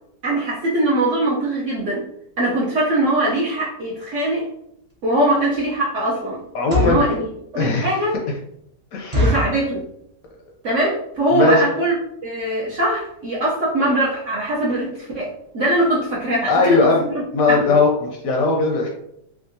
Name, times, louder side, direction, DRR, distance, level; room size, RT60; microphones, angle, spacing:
voice 1, 0.2-2.0 2.4-4.4 5.0-6.4 6.8-7.2 7.5-8.1 9.1-9.8 10.6-11.9 12.2-17.2 17.5-17.8, right 1 dB, 65° right, -5 dB, 0.8 m, -21 dB
sound 1, 4.9-5.0 5.5-5.7 6.4-7.1 7.7-7.8 8.1-8.2 8.5-8.6 9.1-9.6 10.2-10.5 10.8-10.9 11.1-11.4 11.9-12.0 12.2-12.4 12.7-12.8 13.0-13.1, equal, 45° right, 0.4 m, -22 dB
voice 2, 6.5-7.1 7.5-8.0 8.9-9.2 11.3-11.6 16.5-17.0 17.3-18.9, left 3 dB, 70° left, 0 dB, 0.8 m, -18 dB
3.5 x 2.3 x 2.6 m, 0.76 s
omnidirectional pair, 1.8 m